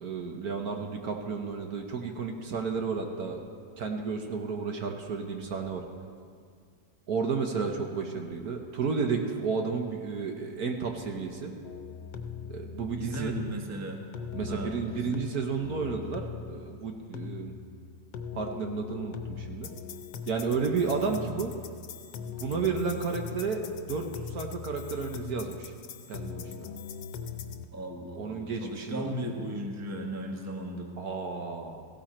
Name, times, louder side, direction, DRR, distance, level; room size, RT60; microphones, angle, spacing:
voice 1, 0.0-3.4 3.8-5.8 7.1-11.5 12.5-13.3 14.3-17.5 18.3-19.7 20.3-21.5 22.4-25.7 26.1-26.7 28.2-29.5 31.0-31.9, right 5 dB, 60° right, 3 dB, 1.4 m, -32 dB
sound 1, 11.6-27.6, left 6 dB, 75° left, 1.4 m, -41 dB
voice 2, 13.0-14.0 14.5-15.2 27.7-30.9, right 1 dB, 10° right, 1 dB, 1.1 m, -36 dB
17.5 x 16.0 x 4.3 m, 2.1 s
omnidirectional pair, 2.0 m